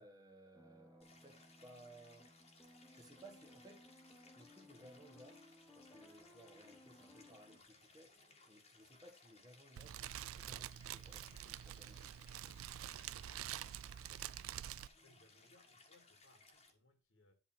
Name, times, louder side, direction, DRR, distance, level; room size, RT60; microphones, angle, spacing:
voice 1, 0.0-2.3 2.9-3.8 4.3-5.4 5.7-8.1 8.5-12.5, right 1 dB, 15° right, 1.6 m, -61 dB
sound 1, 0.5-7.6, left 1 dB, 10° left, 1.0 m, -62 dB
Stream, 1.0-16.7, left 3 dB, 30° left, 1.9 m, -65 dB
Fire, 9.8-14.9, right 11 dB, 80° right, 0.4 m, -47 dB
voice 2, 15.0-17.3, left 2 dB, 65° left, 2.2 m, -69 dB
11.0 x 4.0 x 6.1 m
head